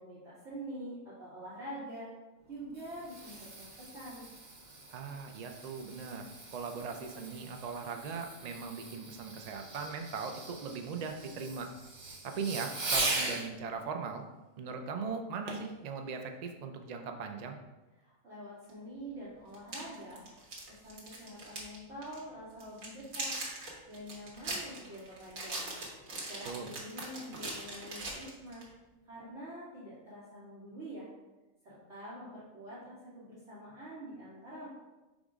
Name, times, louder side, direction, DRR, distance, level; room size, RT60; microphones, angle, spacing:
voice 1, 0.0-2.1 2.5-4.2 18.0-20.2 20.7-23.3 23.9-25.6 26.3-28.6 29.0-31.1 31.6-34.7, right 1 dB, 55° right, -13 dB, 2.5 m, -46 dB
Fireworks, 2.5-13.5 15.5-15.7 16.3-16.4, right 2 dB, 40° right, 0.9 m, -40 dB
voice 2, 4.9-11.7 12.2-14.2 14.6-17.6 26.5-26.7, right 5 dB, 70° right, 4 dB, 0.3 m, -39 dB
sound 1, 18.7-18.8 19.5-21.8 22.0-22.2 22.6-28.7, right 2 dB, 90° right, 1.8 m, -41 dB
5.4 x 3.6 x 4.9 m, 1.1 s
omnidirectional pair, 1.4 m